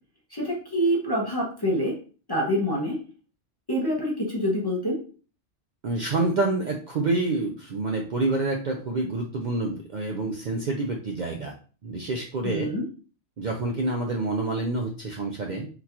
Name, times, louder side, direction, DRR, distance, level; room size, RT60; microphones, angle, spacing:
voice 1, 0.3-1.9 2.3-3.0 3.7-5.0 12.4-12.8, equal, 25° left, -3 dB, 0.6 m, -26 dB
voice 2, 5.8-11.5 11.8-12.7 13.4-15.7, right 2 dB, 60° right, 1 dB, 0.5 m, -27 dB
3.8 x 2.4 x 2.8 m, 0.38 s
omnidirectional pair, 1.2 m